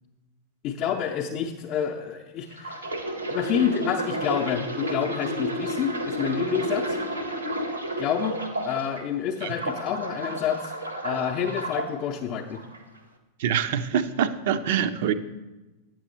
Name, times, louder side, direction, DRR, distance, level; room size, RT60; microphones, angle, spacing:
voice 1, 0.6-2.8 3.3-7.0 8.0-8.4 8.6-10.7 11.0-12.6, left 8 dB, 35° left, -1 dB, 0.6 m, -28 dB
sound 1, 2.5-9.0 9.4-11.9 12.5-12.8, right 1 dB, 85° right, 0.9 m, -31 dB
voice 2, 13.4-15.1, right 8 dB, 55° right, 12 dB, 0.4 m, -25 dB
8.8 x 6.2 x 4.0 m, 1.1 s
figure-of-eight pair, 90°, 0 cm